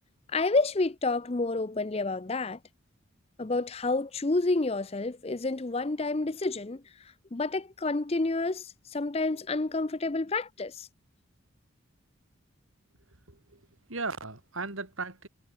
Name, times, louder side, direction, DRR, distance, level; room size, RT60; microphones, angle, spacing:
voice 1, 0.3-2.6 3.4-6.8 7.3-10.9, left 3 dB, 30° left, 0.6 m, -29 dB
voice 2, 13.3-13.6 13.9-15.3, right 3 dB, 75° right, 4.0 m, -36 dB
head